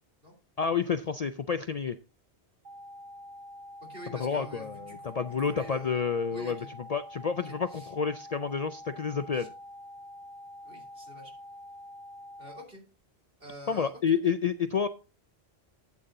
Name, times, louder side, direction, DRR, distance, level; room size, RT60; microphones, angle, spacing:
voice 1, 0.6-2.0 4.2-6.6 6.9-9.5 13.7-14.9, left 6 dB, 50° left, 10 dB, 0.5 m, -29 dB
sound 1, 2.6-12.6, left 1 dB, 45° right, 1.4 m, -46 dB
voice 2, 3.8-6.0 6.3-6.7 7.4-7.9 9.3-9.5 10.6-11.3 12.4-12.8 13.4-14.2, equal, 65° right, 0 dB, 3.4 m, -47 dB
12.5 x 8.5 x 2.6 m, 0.32 s
omnidirectional pair, 1.1 m